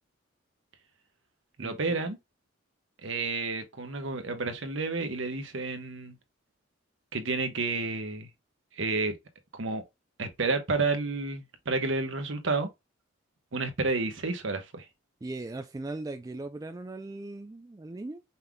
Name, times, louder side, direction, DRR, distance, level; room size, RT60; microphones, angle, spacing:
voice 1, 1.6-2.2 3.0-6.1 7.1-8.3 8.8-9.2 9.6-9.8 10.2-12.7 13.5-14.8, right 3 dB, 65° right, 1.0 m, -30 dB
voice 2, 15.2-18.2, right 2 dB, 15° right, 0.3 m, -38 dB
5.6 x 3.6 x 2.2 m
head